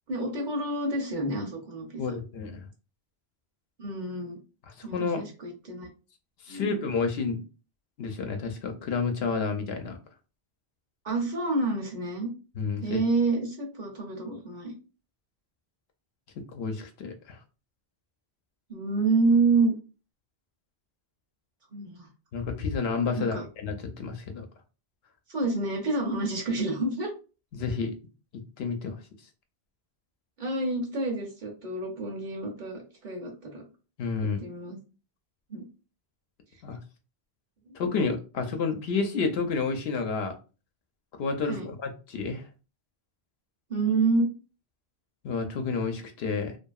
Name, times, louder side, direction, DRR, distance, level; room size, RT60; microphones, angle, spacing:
voice 1, 0.1-2.0 3.8-4.4 4.8-5.9 6.5-6.7 11.0-12.3 12.8-14.7 18.7-19.7 21.7-22.1 23.2-23.4 25.3-27.1 30.4-33.6 34.4-34.8 35.5-35.6 41.4-41.7 43.7-44.3, right 3 dB, 50° right, 1 dB, 0.8 m, -28 dB
voice 2, 2.0-2.7 4.8-5.2 6.4-7.4 8.0-10.0 12.6-13.0 16.5-17.4 22.3-24.5 27.5-27.9 28.3-29.0 34.0-34.4 36.6-36.8 37.7-40.3 41.2-42.4 45.2-46.6, left 4 dB, 80° left, 5 dB, 0.8 m, -30 dB
2.7 x 2.5 x 2.3 m, 0.33 s
omnidirectional pair, 1.1 m